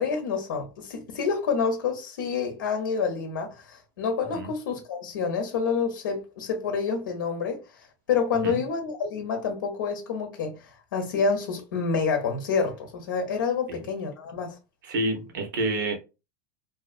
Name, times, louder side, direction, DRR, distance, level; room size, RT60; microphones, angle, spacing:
voice 1, 0.0-7.6 8.1-10.6 10.9-14.5, left 5 dB, 90° left, 0.6 m, -28 dB
voice 2, 14.8-15.9, right 2 dB, 85° right, 0.9 m, -28 dB
2.6 x 2.5 x 2.4 m
supercardioid pair, 115°, 10 cm